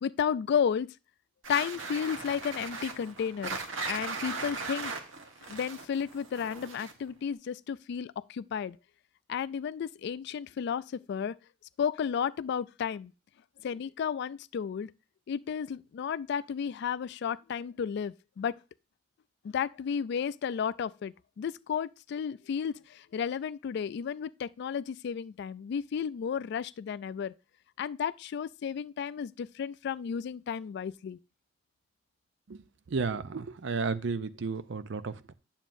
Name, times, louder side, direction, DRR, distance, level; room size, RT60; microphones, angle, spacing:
voice 1, 0.0-0.9 1.5-3.6 3.9-4.9 5.5-8.8 9.3-11.3 11.8-13.1 13.6-14.9 15.3-18.5 19.4-27.3 27.8-31.2, left 7 dB, 60° left, 0.3 m, -33 dB
macbook air, 1.4-7.1, right 4 dB, 85° right, 1.1 m, -38 dB
voice 2, 32.9-35.3, right 4 dB, 70° right, 0.5 m, -33 dB
9.1 x 7.2 x 2.6 m
head